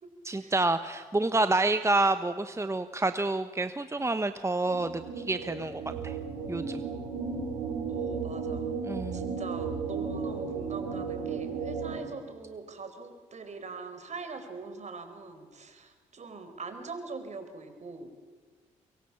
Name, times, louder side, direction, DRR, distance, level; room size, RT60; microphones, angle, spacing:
voice 1, 0.2-5.0 5.3-6.2 6.5-6.8 8.8-9.4, right 2 dB, 20° right, 10 dB, 1.2 m, -28 dB
sound 1, 4.7-12.0, right 5 dB, 90° right, 4.5 m, -34 dB
voice 2, 7.9-8.7 9.1-18.1, right 4 dB, 50° right, 8 dB, 4.4 m, -42 dB
24.0 x 23.0 x 7.2 m, 1.5 s
hypercardioid pair, 45°, 15 cm